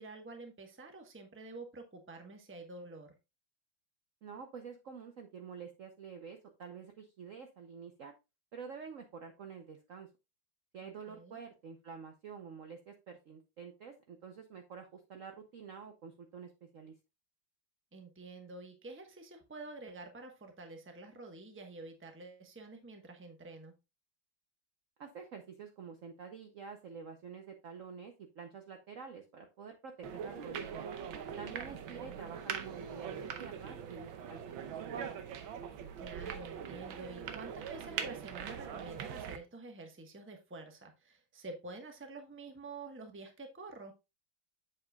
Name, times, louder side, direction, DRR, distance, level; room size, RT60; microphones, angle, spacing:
voice 1, 0.0-3.1 10.8-11.4 17.9-23.7 31.7-32.3 36.0-43.9, right 3 dB, 10° right, 4 dB, 0.8 m, -49 dB
voice 2, 4.2-8.1 8.5-10.1 10.7-16.9 25.0-30.8 31.4-35.1, right 6 dB, 60° right, 5 dB, 0.9 m, -48 dB
sound 1, 30.0-39.4, right 8 dB, 85° right, 1.6 m, -42 dB
7.5 x 7.5 x 2.3 m, 0.26 s
omnidirectional pair, 2.1 m